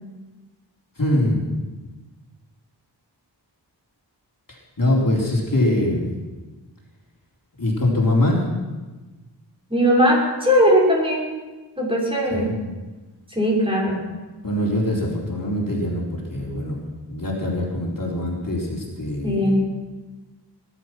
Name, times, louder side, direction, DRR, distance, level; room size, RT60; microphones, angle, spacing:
voice 1, 1.0-1.4 4.5-6.1 7.6-8.4 12.3-12.6 14.4-19.6, left 1 dB, 50° left, -4 dB, 4.0 m, -23 dB
voice 2, 9.7-11.3 11.8-12.5 13.3-14.0 19.2-19.6, equal, 10° right, -5 dB, 6.2 m, -19 dB
20.0 x 12.0 x 6.1 m, 1.2 s
wide cardioid pair, 60°, 43 cm